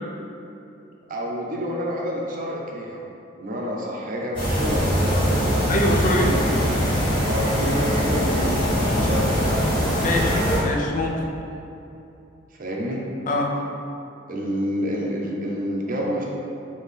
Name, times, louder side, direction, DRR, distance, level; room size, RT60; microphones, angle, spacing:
voice 1, 1.1-3.0 3.4-5.7 6.2-6.6 7.3-9.7 12.6-13.0 14.3-16.2, equal, 45° right, -3 dB, 0.6 m, -28 dB
sound 1, 4.3-10.6, equal, 25° left, 1.5 m, -22 dB
voice 2, 5.7-6.3 10.0-11.2 13.3-13.5, left 1 dB, 40° left, 0 dB, 0.5 m, -24 dB
4.5 x 2.9 x 3.4 m, 2.8 s
head